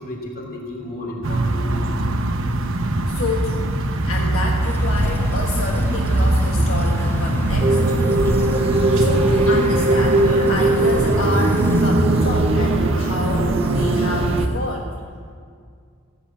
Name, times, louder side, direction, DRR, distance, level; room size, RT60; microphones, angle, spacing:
voice 1, 0.0-3.0 3.9-4.1 5.0-5.1, left 1 dB, 45° left, 0 dB, 3.0 m, -36 dB
sound 1, 1.2-14.5, right 1 dB, 65° right, 1.1 m, -21 dB
voice 2, 3.1-7.8 8.0-8.3 8.9-14.9, left 2 dB, 70° left, -1 dB, 1.4 m, -29 dB
sound 2, 4.6-11.9, left 1 dB, 10° left, 1.1 m, -32 dB
sound 3, 7.6-14.5, right 2 dB, 30° right, 0.8 m, -21 dB
16.0 x 8.5 x 8.7 m, 2.1 s
head